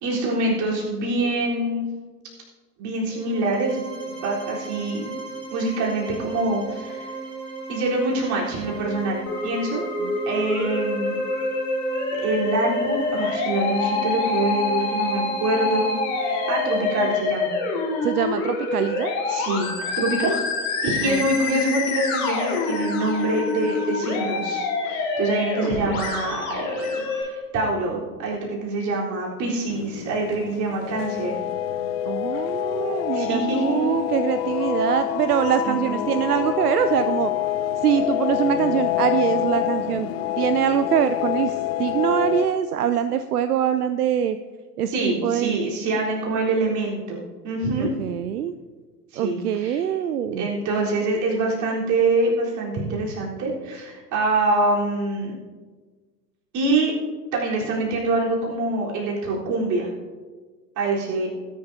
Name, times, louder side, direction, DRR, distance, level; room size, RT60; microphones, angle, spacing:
voice 1, 0.0-1.9 2.8-3.8 4.2-5.1 5.5-7.1 7.7-9.8 10.3-11.2 12.2-15.9 16.2-17.5 19.3-19.7 20.0-20.3 20.8-26.7 27.1-31.3 33.1-34.0 35.6-36.0 44.9-47.9 49.1-49.8 50.3-55.4 56.5-56.9 57.3-59.9 60.8-61.3, right 2 dB, 35° right, -4 dB, 3.9 m, -25 dB
sound 1, 3.1-17.1, right 4 dB, 10° right, 3.6 m, -36 dB
Musical instrument, 9.3-27.2, left 3 dB, 55° left, 4.0 m, -26 dB
voice 2, 18.0-19.1 21.0-21.2 32.1-37.3 37.8-40.1 40.4-44.4 44.8-45.6 47.8-48.5 49.2-50.5, right 9 dB, 70° right, 11 dB, 0.6 m, -24 dB
sound 2, 29.7-42.5, left 11 dB, 25° left, 0.4 m, -26 dB
19.5 x 10.5 x 2.8 m, 1.4 s
figure-of-eight pair, 85°, 48 cm